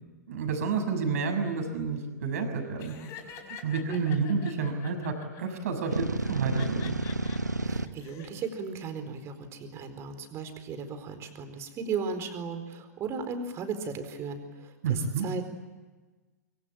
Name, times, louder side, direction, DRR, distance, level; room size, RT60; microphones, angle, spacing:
voice 1, 0.3-2.9 3.6-6.9 14.8-15.2, right 5 dB, 60° right, 6 dB, 6.6 m, -30 dB
Laughter, 2.8-5.4 6.2-7.4 7.9-8.3, left 7 dB, 35° left, 5.1 m, -46 dB
sound 1, 5.9-7.9, right 2 dB, 90° right, 1.2 m, -30 dB
voice 2, 7.6-15.5, right 5 dB, 30° right, 8 dB, 4.4 m, -36 dB
25.0 x 24.5 x 8.8 m, 1.3 s
figure-of-eight pair, 105°, 9 cm